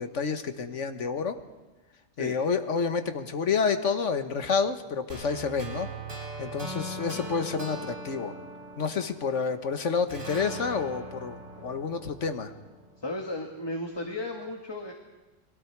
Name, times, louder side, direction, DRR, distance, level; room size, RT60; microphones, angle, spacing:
voice 1, 0.0-1.4 2.2-5.9 6.4-8.3 8.8-12.5, left 5 dB, 65° left, 8 dB, 1.6 m, -29 dB
sound 1, 5.1-9.6 10.1-13.2, right 1 dB, 50° right, 4.7 m, -40 dB
voice 2, 13.0-14.9, left 1 dB, 20° left, 2 dB, 1.7 m, -34 dB
30.0 x 21.5 x 4.7 m, 1.1 s
omnidirectional pair, 1.4 m